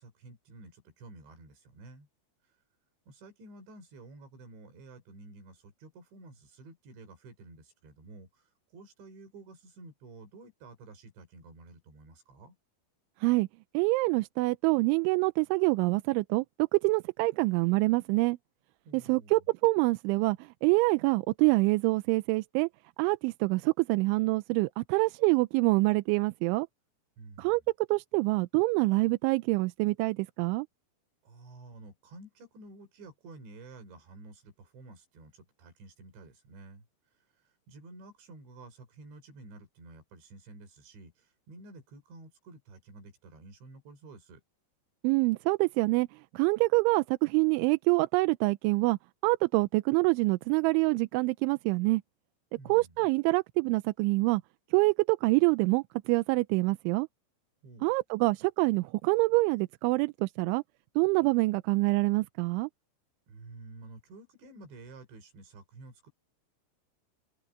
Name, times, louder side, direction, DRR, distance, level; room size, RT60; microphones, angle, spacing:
voice 1, 0.0-2.1 2.5-2.6 3.1-12.6 18.8-19.4 27.2-27.7 31.2-36.9 37.1-44.4 52.6-53.0 57.6-57.9 63.3-66.1, right 2 dB, 65° right, 7.7 m, -51 dB
voice 2, 13.7-18.4 18.9-22.7 23.0-26.7 27.4-30.7 45.0-52.0 52.7-54.4 54.7-57.1 57.8-60.6 61.0-62.7, right 24 dB, 80° right, 2.9 m, -26 dB
omnidirectional pair, 5.6 m